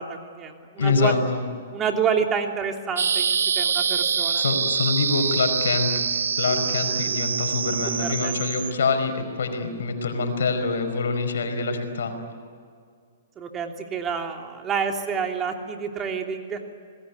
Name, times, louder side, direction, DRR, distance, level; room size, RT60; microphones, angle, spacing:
voice 1, 0.0-1.1 1.7-4.4 8.0-8.4 13.4-16.6, right 6 dB, 20° right, 3 dB, 3.0 m, -28 dB
voice 2, 0.8-1.4 4.4-5.9 6.4-12.1, left 4 dB, 75° left, 7 dB, 5.1 m, -25 dB
sound 1, 3.0-8.7, right 6 dB, 80° right, 0.6 m, -25 dB
27.0 x 20.5 x 9.7 m, 2.2 s
hypercardioid pair, 125°, 0 cm